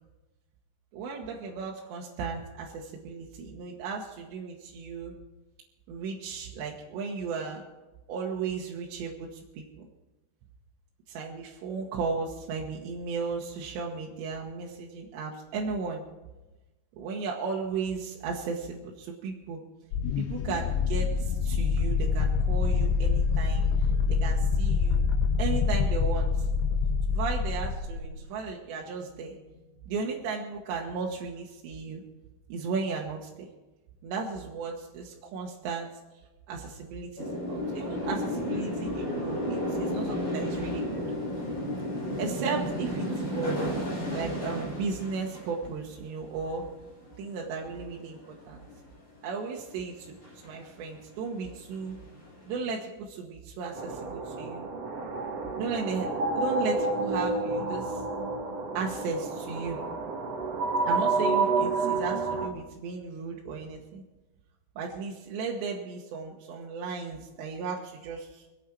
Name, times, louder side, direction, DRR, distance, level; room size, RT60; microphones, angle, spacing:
voice 1, 0.9-5.2 5.9-7.6 8.1-9.9 11.1-16.0 17.0-19.6 20.2-23.7 24.1-25.1 25.4-26.3 27.1-29.3 29.9-32.0 32.5-33.5 34.0-35.9 36.5-41.0 42.2-43.7 44.1-46.7 47.2-48.2 48.5-48.6 49.2-50.2 50.4-52.0 52.5-54.6 55.6-58.0 58.7-59.8 60.9-64.0 64.8-68.4, right 5 dB, 75° right, -1 dB, 3.3 m, -35 dB
sound 1, 19.9-28.1, left 5 dB, 80° left, 2.8 m, -26 dB
sound 2, 37.2-46.7 47.0-47.2 47.6-47.8 48.1-48.9 49.6-49.7 50.1-50.7 51.1-51.2 51.4-52.7, equal, 20° left, 4.7 m, -33 dB
sound 3, 53.8-62.5, right 3 dB, 55° right, 1.8 m, -29 dB
25.5 x 8.7 x 4.5 m, 1.1 s
omnidirectional pair, 5.2 m